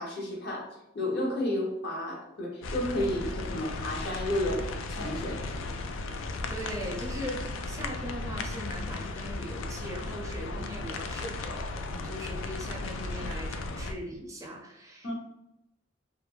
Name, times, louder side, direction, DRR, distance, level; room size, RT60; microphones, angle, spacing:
voice 1, 0.0-5.4 15.0-15.1, left 1 dB, 55° left, -1 dB, 0.7 m, -32 dB
sound 1, 2.6-13.9, left 2 dB, 90° left, 0.3 m, -36 dB
voice 2, 6.5-15.1, equal, 15° right, -1 dB, 0.4 m, -40 dB
2.3 x 2.1 x 3.0 m, 0.88 s
head